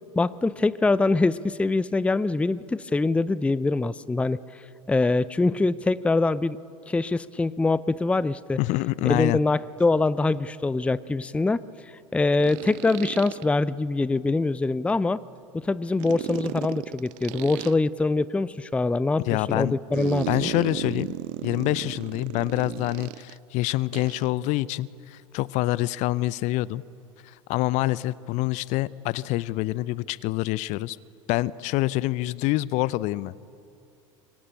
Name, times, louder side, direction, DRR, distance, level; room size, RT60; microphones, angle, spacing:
voice 1, 0.1-4.4 4.9-6.6 6.9-8.6 9.0-11.6 12.1-15.2 15.5-20.5, left 3 dB, 5° left, 20 dB, 0.6 m, -24 dB
voice 2, 8.6-9.4 19.2-19.8 20.3-21.1 21.4-26.8 27.2-31.0 31.3-33.3, left 18 dB, 45° left, 21 dB, 0.7 m, -26 dB
sound 1, 9.8-9.9 12.4-13.4 16.0-17.7 19.9-23.4 23.9-24.3, right 21 dB, 50° right, 0.6 m, -34 dB
27.0 x 23.5 x 9.0 m, 2.5 s
figure-of-eight pair, 75°, 17 cm